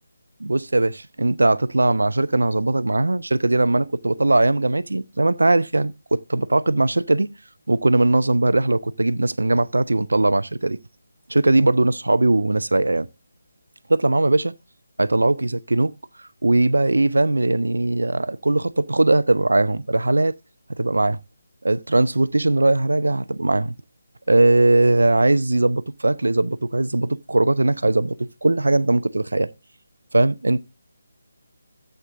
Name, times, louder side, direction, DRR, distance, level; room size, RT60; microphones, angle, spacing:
voice 1, 0.4-7.3 7.7-10.8 11.3-13.1 13.9-14.5 15.0-15.9 16.4-20.3 20.7-21.2 21.6-23.7 24.3-29.5 30.1-30.6, right 2 dB, 65° right, 0.7 m, -20 dB
13.0 x 8.0 x 3.6 m
figure-of-eight pair, 150°, 0 cm